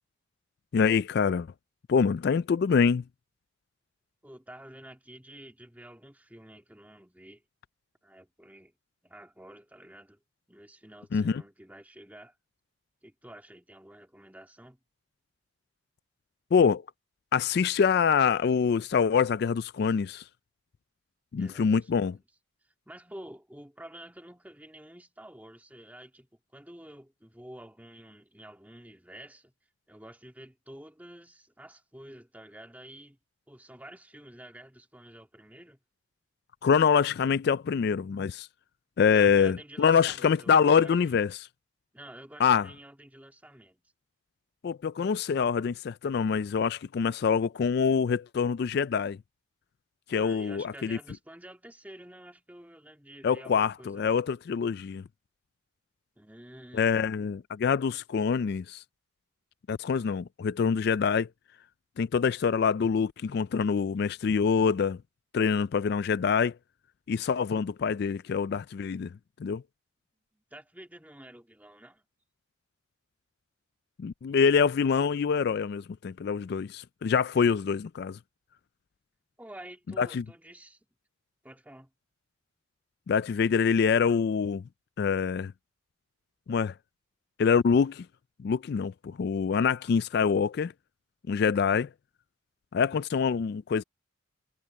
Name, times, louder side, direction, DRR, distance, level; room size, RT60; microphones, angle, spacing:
voice 1, 0.7-1.5 1.9-3.0 11.1-11.4 16.5-16.8 17.3-20.2 21.3-22.2 36.6-38.5 39.0-41.5 42.4-42.7 44.6-49.2 50.1-51.0 53.2-55.0 56.7-58.8 59.7-61.3 62.0-65.0 65.3-66.5 67.1-69.1 69.4-69.6 74.0-78.2 80.0-80.2 83.1-84.6 85.0-85.5 86.5-86.7 87.4-88.1 88.4-90.7 91.3-91.9 92.7-93.8, left 6 dB, 50° left, 0.3 m, -25 dB
voice 2, 4.2-7.4 8.0-8.7 9.0-10.2 10.5-12.3 13.0-14.8 21.4-22.2 22.9-26.3 26.5-29.5 29.9-33.2 33.5-35.8 39.1-41.2 41.9-43.8 50.1-54.2 56.2-57.0 70.3-72.1 79.4-80.9 81.4-81.9, right 1 dB, 10° right, 1.9 m, -49 dB
head